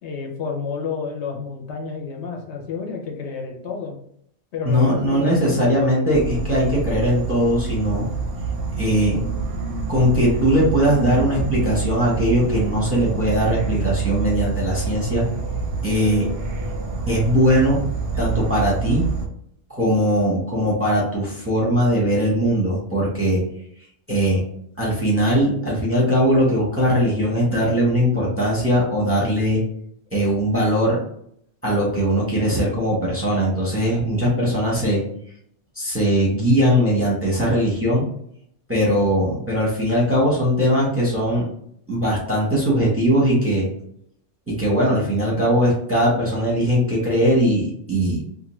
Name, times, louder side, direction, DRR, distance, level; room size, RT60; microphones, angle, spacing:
voice 1, 0.0-4.0 4.5-5.7, left 5 dB, 65° left, 1 dB, 0.9 m, -30 dB
voice 2, 4.6-8.1 8.8-9.2 9.9-15.2 15.8-16.3 17.1-17.8 18.1-19.0 19.7-23.4 24.1-24.4 24.8-29.6 30.1-31.0 31.6-35.0 35.8-38.1 38.7-41.5 41.9-43.7 44.5-48.2, equal, 15° right, -5 dB, 0.6 m, -20 dB
Insect / Frog, 6.1-19.3, right 4 dB, 60° right, 0.7 m, -27 dB
2.6 x 2.5 x 3.0 m, 0.68 s
omnidirectional pair, 1.3 m